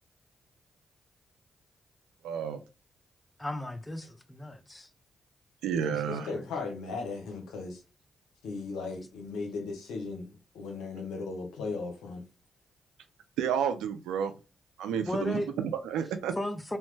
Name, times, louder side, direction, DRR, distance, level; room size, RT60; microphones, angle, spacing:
voice 1, 2.2-2.6 5.6-6.3 13.4-14.3 14.8-16.3, right 8 dB, 85° right, 0.3 m, -30 dB
voice 2, 3.4-4.9 5.9-6.0 6.3-6.5 15.1-15.5 16.4-16.8, left 1 dB, 20° left, 0.6 m, -35 dB
voice 3, 6.1-7.8 8.4-12.2, left 4 dB, 85° left, 0.7 m, -37 dB
2.9 x 2.1 x 3.1 m
hypercardioid pair, 45°, 0 cm